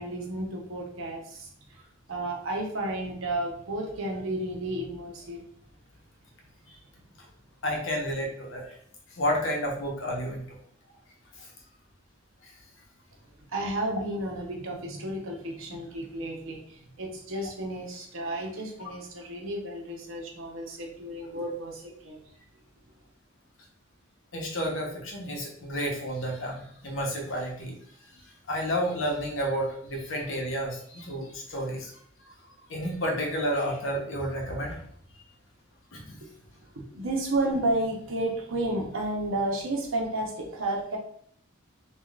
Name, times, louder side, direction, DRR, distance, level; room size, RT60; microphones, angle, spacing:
voice 1, 0.0-1.5 2.1-5.4 13.5-22.2 36.2-36.3 36.7-41.0, right 1 dB, 75° right, 0 dB, 0.8 m, -32 dB
voice 2, 7.6-8.8 9.1-10.6 11.4-11.5 12.4-12.5 24.3-27.7 28.5-31.9 32.5-34.8 35.9-36.2, equal, 75° left, 0 dB, 0.8 m, -31 dB
3.5 x 2.3 x 2.3 m, 0.63 s
head